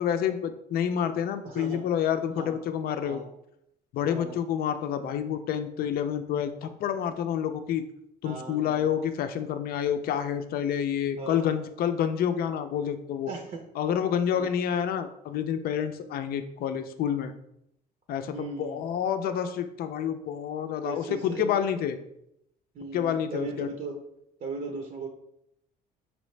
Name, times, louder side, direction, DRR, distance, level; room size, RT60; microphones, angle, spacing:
voice 1, 0.0-3.2 3.9-7.8 8.2-13.3 13.8-17.3 18.1-22.0 22.9-23.7, left 9 dB, 65° left, 9 dB, 0.5 m, -28 dB
voice 2, 1.4-1.8 2.4-2.5 3.0-3.3 4.1-4.4 8.2-8.9 11.2-11.6 13.3-13.7 14.3-14.5 18.3-18.8 20.8-21.5 22.7-24.0 24.4-25.1, right 3 dB, 50° right, 2 dB, 0.7 m, -37 dB
5.1 x 3.0 x 3.2 m, 0.78 s
cardioid pair, 110°, 17 cm